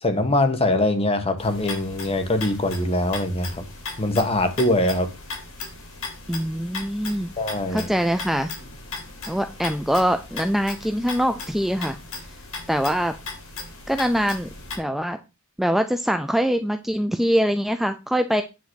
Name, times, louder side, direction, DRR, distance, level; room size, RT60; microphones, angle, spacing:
voice 1, 0.0-3.6 4.0-5.1 7.4-7.9, left 1 dB, 30° left, 1.5 m, -22 dB
sound 1, 1.4-14.8, left 3 dB, 80° left, 3.3 m, -37 dB
voice 2, 6.3-7.3 7.7-8.5 9.3-12.0 12.7-13.1 13.9-14.5 14.8-15.2 15.6-18.4, equal, ahead, 0.5 m, -23 dB
9.5 x 3.9 x 6.3 m
head